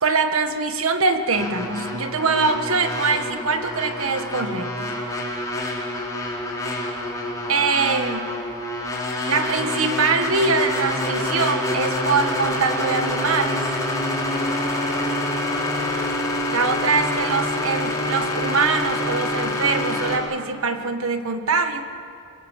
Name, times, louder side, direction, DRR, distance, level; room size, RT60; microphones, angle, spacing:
voice 1, 0.0-5.0 7.5-8.3 9.3-13.6 16.5-21.8, right 4 dB, 65° right, 7 dB, 1.6 m, -23 dB
sound 1, 1.3-20.2, left 1 dB, 15° left, 3.9 m, -26 dB
25.0 x 23.0 x 7.6 m, 2.6 s
head